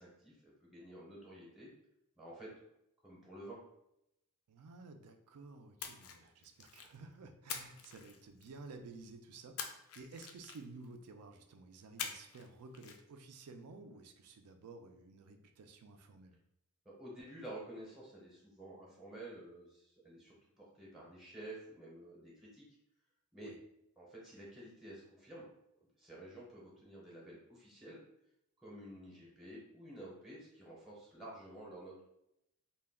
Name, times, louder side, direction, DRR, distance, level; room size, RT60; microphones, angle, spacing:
voice 1, 0.0-1.7 2.2-2.5 3.0-3.6 16.8-22.7 23.3-23.5 24.0-25.5 25.8-28.0 28.6-32.0, right 1 dB, ahead, -5 dB, 0.6 m, -51 dB
voice 2, 4.5-16.4 23.4-23.6, right 3 dB, 90° right, 7 dB, 0.4 m, -53 dB
Splash splatter, 5.8-7.0 7.5-8.7 9.6-10.8 12.0-12.5 12.7-13.0, left 7 dB, 65° left, 0.4 m, -45 dB
2.2 x 2.1 x 3.4 m, 0.81 s
head